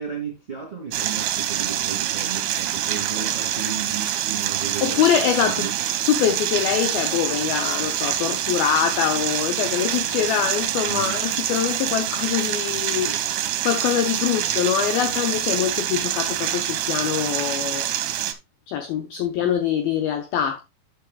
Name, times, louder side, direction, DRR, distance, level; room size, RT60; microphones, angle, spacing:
voice 1, 0.0-5.0 5.4-5.7 6.7-6.8 10.9-11.2 19.4-19.5, right 6 dB, 20° right, 1.7 m, -34 dB
sound 1, 0.9-18.3, right 12 dB, 75° right, 2.3 m, -26 dB
voice 2, 4.8-5.7 6.1-13.2 13.6-17.9 18.7-20.6, left 9 dB, 75° left, 2.2 m, -24 dB
11.0 x 6.6 x 2.3 m
omnidirectional pair, 5.4 m